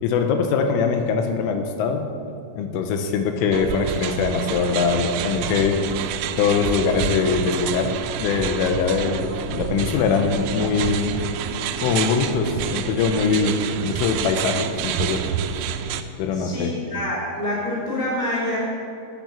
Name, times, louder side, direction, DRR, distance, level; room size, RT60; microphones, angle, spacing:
voice 1, 0.0-2.1 2.6-5.8 6.4-11.2 11.8-15.3 16.2-16.7, left 5 dB, 85° left, 5 dB, 3.3 m, -22 dB
sound 1, 3.5-16.0, right 9 dB, 90° right, 3.3 m, -28 dB
voice 2, 16.3-18.6, left 1 dB, 15° right, -5 dB, 1.9 m, -26 dB
10.5 x 9.2 x 7.2 m, 2.3 s
omnidirectional pair, 5.8 m